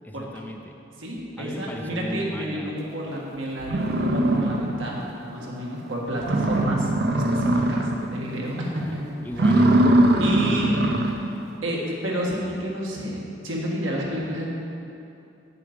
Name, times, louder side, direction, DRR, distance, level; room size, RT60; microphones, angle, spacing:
voice 1, 0.0-0.7 1.4-2.7 8.8-9.0 9.2-10.4, equal, 10° left, 3 dB, 0.3 m, -37 dB
voice 2, 1.0-5.0 5.3-9.1 9.5-9.6 10.2-10.9 11.6-14.5, equal, 80° right, -3 dB, 1.7 m, -30 dB
sound 1, 3.2-3.3 3.6-5.0 5.4-5.5 5.9-6.0 6.2-8.1 8.5-8.8 9.3-11.3, right 1 dB, 50° right, 0.6 m, -21 dB
8.8 x 6.9 x 5.1 m, 2.7 s
head